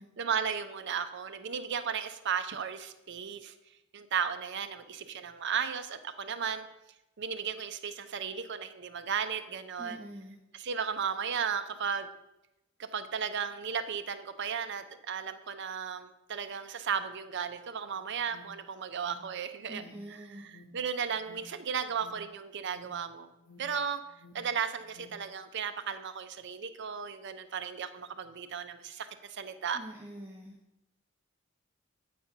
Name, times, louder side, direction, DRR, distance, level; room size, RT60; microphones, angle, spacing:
voice 1, 0.2-3.5 3.9-6.7 7.2-10.0 10.5-12.1 12.8-19.8 20.1-20.2 20.7-23.3 23.6-24.0 24.3-29.8, right 7 dB, 55° right, 10 dB, 0.6 m, -35 dB
voice 2, 9.8-10.4 19.7-20.5 29.7-30.6, right 1 dB, 10° right, -2 dB, 0.9 m, -45 dB
Alarm, 17.8-25.3, left 2 dB, 85° left, 1.1 m, -57 dB
8.5 x 4.2 x 5.8 m, 0.90 s
head